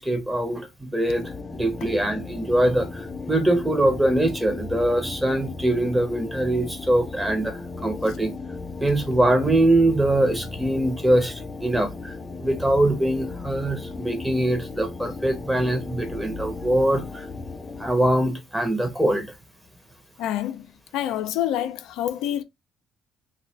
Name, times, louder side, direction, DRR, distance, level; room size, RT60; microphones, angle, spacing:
voice 1, 0.0-1.3 1.6-8.3 8.8-12.1 12.4-17.3 17.8-19.3, right 1 dB, 10° right, 1.0 m, -23 dB
sound 1, 1.1-17.9, left 3 dB, 30° left, 0.6 m, -36 dB
voice 2, 20.2-20.7 20.9-22.4, left 11 dB, 80° left, 0.3 m, -27 dB
2.6 x 2.4 x 3.2 m
supercardioid pair, 65°, 0 cm